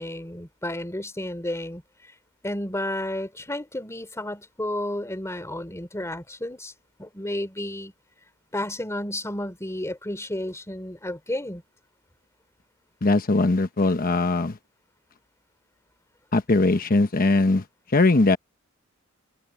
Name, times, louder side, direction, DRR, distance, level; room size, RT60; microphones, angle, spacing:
voice 1, 0.0-1.8 2.4-6.7 7.0-7.9 8.5-11.6, left 1 dB, 15° left, 3.2 m, -32 dB
voice 2, 13.0-14.6 16.3-17.6 17.9-18.4, left 2 dB, 40° left, 1.0 m, -20 dB
head